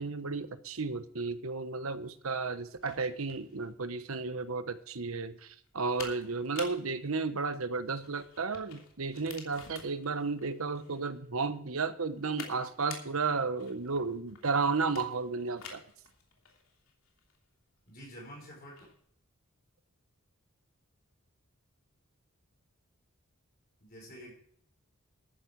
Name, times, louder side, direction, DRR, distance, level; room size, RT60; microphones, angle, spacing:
voice 1, 0.0-15.8, right 4 dB, 75° right, 12 dB, 1.1 m, -33 dB
sound 1, 1.6-19.0, left 5 dB, 75° left, 3.0 m, -51 dB
voice 2, 17.9-18.9 23.8-24.3, equal, 45° left, -3 dB, 5.3 m, -48 dB
13.5 x 10.0 x 4.7 m, 0.64 s
head